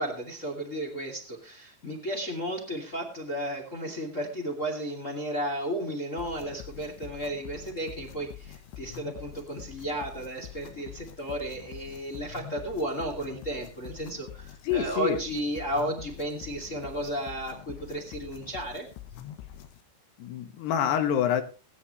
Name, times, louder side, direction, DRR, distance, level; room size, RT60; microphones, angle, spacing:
voice 1, 0.0-18.9, right 1 dB, 20° left, 2.2 m, -33 dB
sound 1, 6.2-19.8, left 11 dB, 85° left, 3.5 m, -45 dB
voice 2, 14.6-15.2 20.2-21.4, left 9 dB, 70° left, 3.4 m, -26 dB
21.0 x 9.6 x 3.2 m
omnidirectional pair, 5.2 m